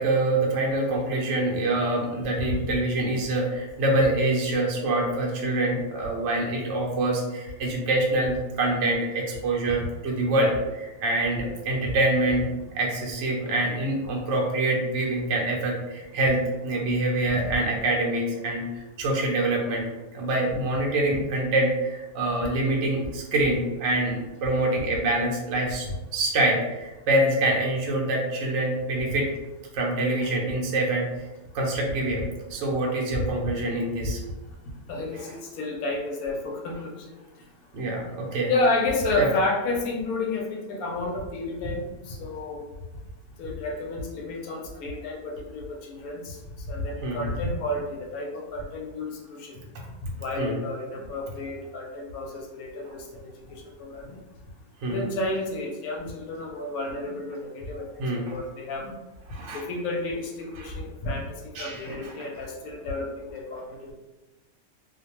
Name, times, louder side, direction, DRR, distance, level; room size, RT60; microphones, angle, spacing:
voice 1, 0.0-29.3 29.7-31.1 31.5-32.2 32.5-34.2 35.3-35.4 37.7-38.5 39.2-39.3 47.0-47.2 50.4-50.5 54.8-55.1 58.0-58.3 59.3-59.7 60.6-60.7 61.6-62.2, right 2 dB, 65° right, -2 dB, 0.8 m, -25 dB
voice 2, 34.9-35.3 35.5-37.1 38.5-42.6 43.4-46.4 46.6-49.6 50.0-53.2 53.5-54.2 54.9-57.9 58.3-58.9 59.5-63.9, left 2 dB, 80° left, 0 dB, 1.0 m, -31 dB
2.5 x 2.1 x 2.9 m, 1.1 s
omnidirectional pair, 1.5 m